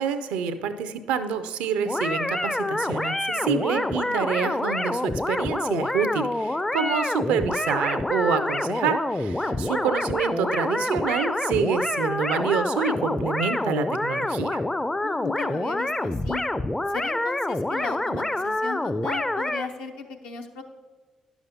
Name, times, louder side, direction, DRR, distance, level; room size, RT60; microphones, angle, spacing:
voice 1, 0.0-14.6, right 6 dB, 75° right, 11 dB, 0.4 m, -27 dB
sound 1, 1.8-19.7, left 1 dB, 15° left, 0.4 m, -27 dB
voice 2, 4.1-4.5 9.4-9.8 15.0-16.4 16.9-20.6, left 4 dB, 75° left, 3 dB, 0.7 m, -36 dB
10.5 x 7.0 x 2.7 m, 1.4 s
hypercardioid pair, 40°, 2 cm